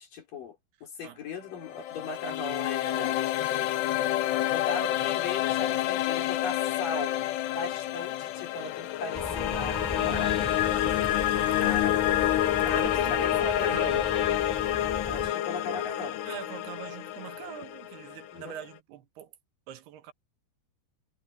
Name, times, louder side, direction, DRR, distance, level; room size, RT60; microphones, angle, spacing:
voice 1, 0.0-3.2 4.5-7.2 7.5-10.5 11.6-12.2 12.6-14.0 15.1-16.2 18.3-18.6, left 3 dB, 55° left, 5.8 m, -38 dB
sound 1, 1.5-18.6, left 13 dB, 85° left, 3.3 m, -28 dB
sound 2, 9.1-15.3, equal, 5° left, 6.2 m, -38 dB
voice 2, 11.4-11.8 12.6-14.1 16.2-19.3 19.7-20.1, right 11 dB, 80° right, 3.2 m, -42 dB
omnidirectional pair, 4.7 m